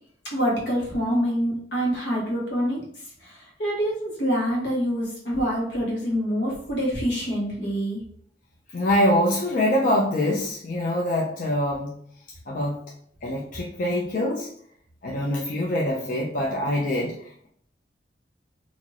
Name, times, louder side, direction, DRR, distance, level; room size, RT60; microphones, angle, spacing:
voice 1, 0.3-2.8 3.2-8.0, equal, 80° left, -4 dB, 1.1 m, -26 dB
voice 2, 8.7-12.0 12.5-12.8 13.2-14.5 15.0-17.5, left 1 dB, 50° left, -3 dB, 0.4 m, -24 dB
2.5 x 2.5 x 3.1 m, 0.63 s
head